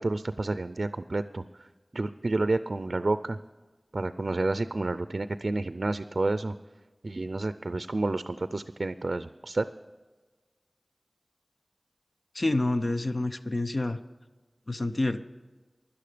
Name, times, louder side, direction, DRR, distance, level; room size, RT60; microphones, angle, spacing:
voice 1, 0.0-3.4 3.9-6.5 7.0-9.7, right 2 dB, 70° right, 12 dB, 0.4 m, -30 dB
voice 2, 12.3-14.0 14.7-15.2, left 2 dB, 55° left, 8 dB, 0.6 m, -28 dB
16.5 x 11.5 x 5.0 m, 1.3 s
wide cardioid pair, 40°, 0 cm